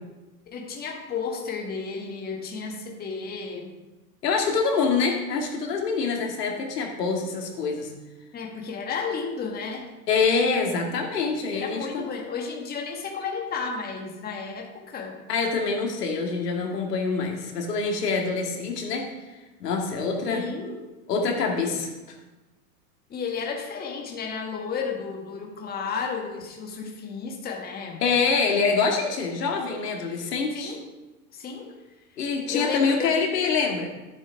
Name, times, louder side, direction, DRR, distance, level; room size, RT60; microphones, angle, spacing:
voice 1, 0.5-3.7 8.3-9.9 11.5-15.2 20.3-20.8 23.1-28.0 30.5-30.8 31.3-31.8 32.5-33.2, left 5 dB, 20° left, 1 dB, 1.4 m, -33 dB
voice 2, 4.2-7.9 10.1-12.0 15.3-19.1 19.6-20.4 21.1-21.9 28.0-30.7 32.2-33.9, left 4 dB, 75° left, 1 dB, 2.2 m, -25 dB
12.0 x 7.4 x 3.5 m, 1.1 s
hypercardioid pair, 110°, 48 cm